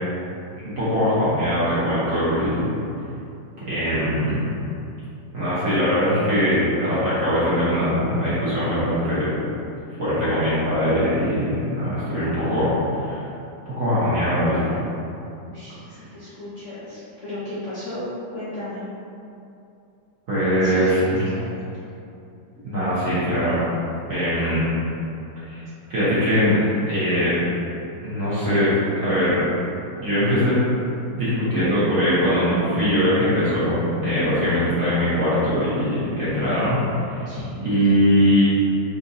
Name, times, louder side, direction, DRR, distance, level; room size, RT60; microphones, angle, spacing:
voice 1, 0.8-2.7 3.7-4.4 5.3-9.3 10.0-13.2 13.8-14.8 20.3-21.2 22.6-23.6 24.1-24.6 25.5-25.6 25.9-26.6 26.9-27.3 28.0-28.8 29.0-29.4 30.0-30.6 31.1-37.3 37.6-38.4, equal, 50° right, -12 dB, 1.2 m, -21 dB
voice 2, 15.4-18.1 18.3-18.8 20.6-21.7 34.1-34.4 37.3-37.6, left 1 dB, 50° left, -12 dB, 0.9 m, -35 dB
3.7 x 2.7 x 2.6 m, 2.7 s
omnidirectional pair, 2.0 m